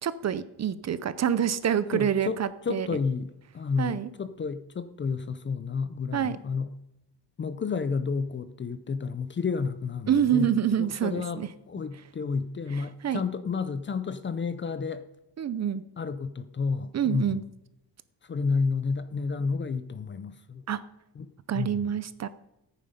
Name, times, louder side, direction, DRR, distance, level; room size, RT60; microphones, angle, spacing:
voice 1, 0.0-3.0 3.8-4.1 6.1-6.4 10.1-11.5 12.7-13.2 15.4-15.8 16.9-17.4 20.7-20.8 21.5-22.3, right 9 dB, 40° right, 0.6 m, -27 dB
voice 2, 1.9-6.7 7.4-15.0 16.0-17.4 18.2-20.6 21.2-21.9, left 5 dB, 30° left, 0.5 m, -31 dB
14.5 x 9.2 x 5.2 m
cardioid pair, 155°, 41 cm